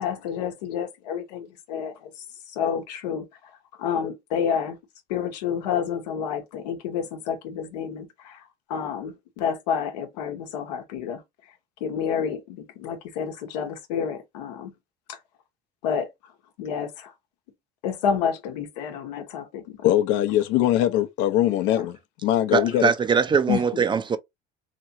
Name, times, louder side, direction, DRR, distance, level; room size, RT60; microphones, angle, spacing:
voice 1, 0.0-3.3 3.8-4.8 5.1-11.2 11.8-14.7 15.1-15.2 15.8-16.3 16.6-17.1 17.8-19.9 21.7-21.9 23.5-23.8, left 7 dB, 90° left, 0.9 m, -29 dB
voice 2, 19.8-22.0 22.2-22.9, left 12 dB, 70° left, 0.7 m, -21 dB
voice 3, 22.5-24.2, right 6 dB, 25° right, 0.4 m, -22 dB
3.0 x 2.9 x 2.7 m
supercardioid pair, 95°, 20 cm